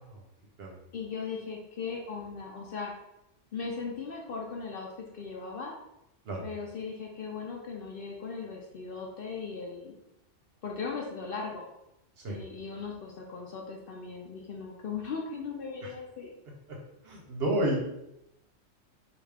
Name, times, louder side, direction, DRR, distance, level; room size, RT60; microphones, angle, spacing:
voice 1, 0.9-2.9 3.5-5.8 6.4-9.9 10.6-11.7 12.2-16.4, left 5 dB, 60° left, -1 dB, 0.6 m, -38 dB
voice 2, 17.0-17.8, right 1 dB, 60° right, 0 dB, 0.8 m, -29 dB
3.4 x 2.4 x 3.3 m, 0.85 s
omnidirectional pair, 1.3 m